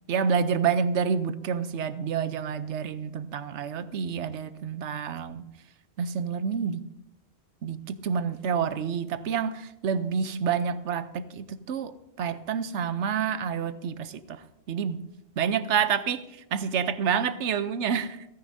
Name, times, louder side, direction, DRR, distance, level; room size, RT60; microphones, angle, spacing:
voice 1, 0.1-5.5 6.0-6.9 7.6-15.0 15.4-18.3, right 7 dB, 85° right, 13 dB, 1.0 m, -28 dB
28.5 x 9.7 x 2.6 m, 0.87 s
omnidirectional pair, 1.2 m